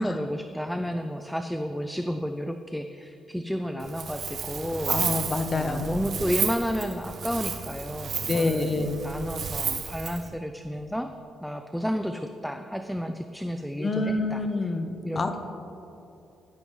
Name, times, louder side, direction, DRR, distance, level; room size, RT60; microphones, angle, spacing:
voice 1, 0.0-5.0 5.5-11.1 11.4-14.4 15.0-15.4, equal, ahead, 7 dB, 0.4 m, -31 dB
Wind, 3.8-10.3, right 6 dB, 55° right, 1.0 m, -32 dB
voice 2, 4.9-6.0 8.3-9.0 13.8-15.4, left 2 dB, 35° left, 7 dB, 0.9 m, -27 dB
13.0 x 10.5 x 3.2 m, 2.9 s
cardioid pair, 90°, 0 cm